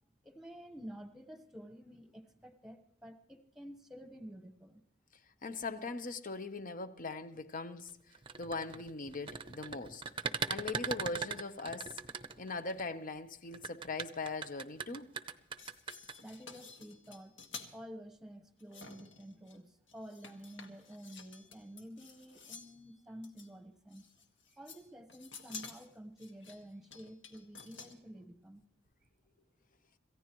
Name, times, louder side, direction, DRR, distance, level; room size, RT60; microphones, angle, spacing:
voice 1, 0.2-4.8 8.4-8.5 16.2-17.3 17.7-24.1 24.6-28.6, equal, ahead, 1.1 m, -50 dB
voice 2, 5.4-10.0 10.5-12.0 12.4-15.1, left 3 dB, 45° left, 0.9 m, -40 dB
sound 1, 8.1-12.8 13.5-16.1, right 5 dB, 25° right, 0.7 m, -39 dB
Indoor Kitchen Knife Scrape Clang Zing Various, 15.4-17.7 18.6-19.6 19.9-22.8 23.2-23.5 23.9-24.8 25.1-27.9, left 5 dB, 70° left, 1.9 m, -51 dB
27.0 x 15.0 x 3.1 m
head